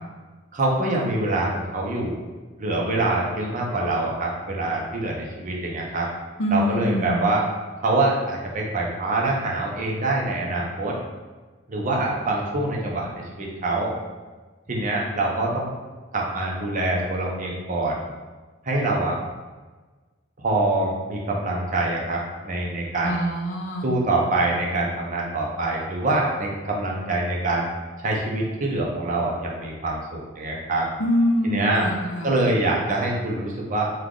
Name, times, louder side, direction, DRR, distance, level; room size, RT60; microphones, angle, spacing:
voice 1, 0.5-2.2 2.6-6.1 6.5-7.5 7.8-11.0 11.7-13.9 14.7-15.7 16.1-18.0 18.6-19.2 20.4-23.2 23.8-27.7 28.0-30.9 31.4-31.9 32.2-33.9, right 2 dB, 40° right, -2 dB, 0.6 m, -25 dB
voice 2, 6.4-7.3 23.0-23.9 31.0-32.4, equal, 65° left, 1 dB, 0.6 m, -24 dB
3.3 x 2.3 x 3.7 m, 1.3 s
head